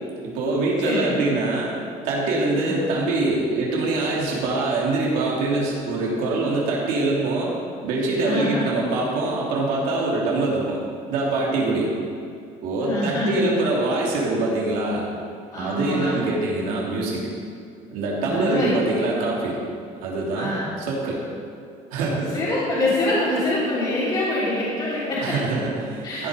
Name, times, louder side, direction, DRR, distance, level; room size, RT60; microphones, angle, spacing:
voice 1, 0.2-1.7 2.0-7.5 7.8-10.8 11.1-11.9 12.6-15.0 15.5-17.3 17.9-19.6 20.0-21.2 21.9-22.5 25.2-26.3, right 2 dB, 75° right, -4 dB, 3.0 m, -24 dB
voice 2, 0.8-1.2 2.6-2.8 8.2-8.6 12.8-13.5 15.5-16.2 18.3-18.8 20.3-20.7 22.3-25.3 26.0-26.3, left 1 dB, 30° left, -9 dB, 3.0 m, -25 dB
15.0 x 8.5 x 5.1 m, 2.5 s
cardioid pair, 170°, 14 cm